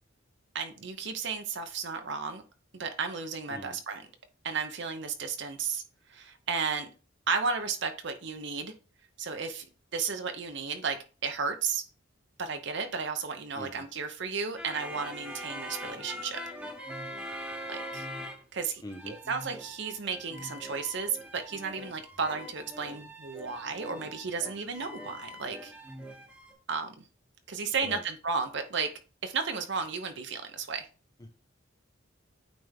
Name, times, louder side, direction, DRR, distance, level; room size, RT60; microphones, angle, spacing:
voice 1, 0.5-2.4 2.7-4.0 4.4-5.8 6.1-6.9 7.3-8.7 9.2-9.7 9.9-11.0 11.2-11.8 12.4-16.4 17.7-18.1 18.5-25.7 26.7-27.0 27.5-28.9 29.2-30.9, right 5 dB, 60° right, 7 dB, 0.8 m, -33 dB
sound 1, 14.6-18.6 18.9-26.5, equal, 5° right, 1.0 m, -42 dB
voice 2, 18.8-19.2 27.8-28.0 31.2-31.3, left 1 dB, 20° left, 4 dB, 0.6 m, -43 dB
9.1 x 3.4 x 3.5 m, 0.35 s
head